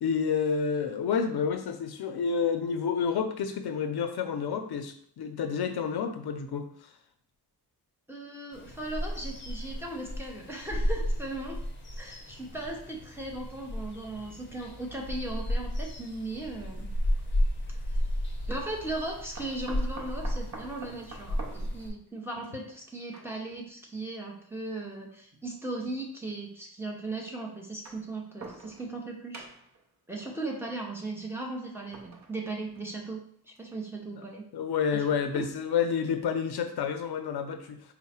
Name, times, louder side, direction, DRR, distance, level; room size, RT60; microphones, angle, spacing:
voice 1, 0.0-6.7 34.1-34.2 34.5-37.9, left 6 dB, 85° left, 7 dB, 0.5 m, -29 dB
voice 2, 8.1-11.6 12.0-16.9 18.5-29.5 30.1-33.2 33.5-34.4 34.9-35.0 35.3-35.4, right 2 dB, 5° right, -2 dB, 0.7 m, -37 dB
sound 1, 8.5-21.9, equal, 30° left, 0.6 m, -33 dB
sound 2, 16.9-17.1 19.4-23.6 24.6-24.7 25.9-26.0 27.6-29.0 29.3-29.8 31.7-33.1 33.6-33.7 34.0-34.1, right 3 dB, 50° right, 0.6 m, -47 dB
4.6 x 2.1 x 4.2 m, 0.62 s
wide cardioid pair, 155°, 37 cm